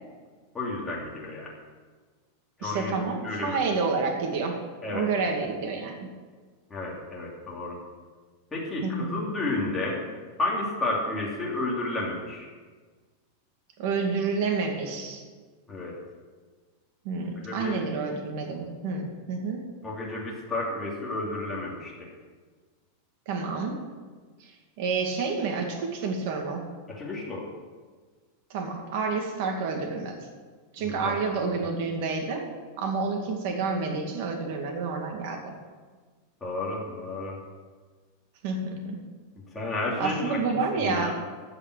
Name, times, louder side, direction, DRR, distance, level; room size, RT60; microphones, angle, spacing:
voice 1, 0.5-1.5 2.6-3.6 4.8-5.1 6.7-7.8 8.5-10.1 10.4-12.5 15.7-15.9 17.4-17.8 19.8-22.1 26.9-27.5 30.8-31.2 36.4-37.4 39.5-40.4 40.7-41.1, left 2 dB, 10° left, -5 dB, 2.7 m, -31 dB
voice 2, 2.6-4.6 4.9-6.1 8.8-9.2 13.8-15.2 17.0-19.8 23.3-23.8 24.4-24.5 24.8-26.6 28.5-30.3 30.7-32.5 32.8-35.5 38.4-39.0 40.0-41.1, right 4 dB, 50° right, 2 dB, 2.2 m, -29 dB
14.5 x 5.6 x 7.9 m, 1.4 s
supercardioid pair, 170°, 0 cm